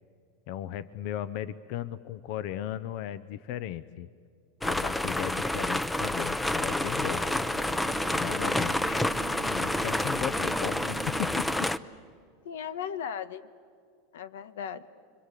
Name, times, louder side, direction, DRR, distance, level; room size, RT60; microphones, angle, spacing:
voice 1, 0.5-4.1 4.6-7.2 8.1-9.1 9.4-11.7, left 11 dB, 55° left, 16 dB, 0.7 m, -36 dB
sound 1, 4.6-11.8, left 1 dB, 5° left, 0.6 m, -29 dB
Electric guitar, 6.8-12.3, right 15 dB, 70° right, 1.0 m, -45 dB
voice 2, 12.4-13.5 14.1-14.9, left 8 dB, 90° left, 14 dB, 1.3 m, -37 dB
30.0 x 23.5 x 8.3 m, 2.1 s
supercardioid pair, 140°, 0 cm